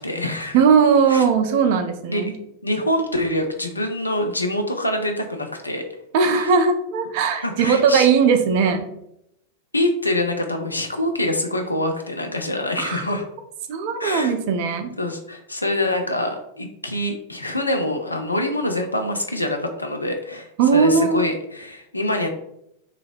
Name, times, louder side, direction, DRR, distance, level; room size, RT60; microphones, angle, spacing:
voice 1, 0.0-0.6 1.1-1.2 2.1-2.2 2.6-5.8 6.3-6.5 7.4-8.1 9.7-13.3 14.0-14.3 15.0-22.3, left 1 dB, 80° left, 4 dB, 0.4 m, -25 dB
voice 2, 0.5-2.3 6.1-8.9 12.8-13.0 13.7-14.9 20.6-21.2, right 6 dB, 50° right, 7 dB, 0.4 m, -18 dB
2.9 x 2.6 x 2.4 m, 0.78 s
figure-of-eight pair, 90°, 0 cm